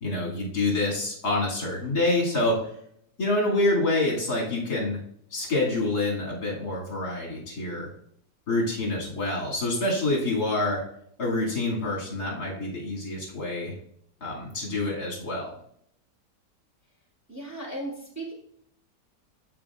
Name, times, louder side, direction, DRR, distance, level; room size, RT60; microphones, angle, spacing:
voice 1, 0.0-2.7 3.2-5.0 5.3-7.9 8.5-10.9 11.2-13.7 14.2-15.5, left 2 dB, 65° left, -4 dB, 2.9 m, -27 dB
voice 2, 17.3-18.3, right 1 dB, 10° right, -6 dB, 2.7 m, -36 dB
14.5 x 5.0 x 2.4 m, 0.68 s
omnidirectional pair, 1.8 m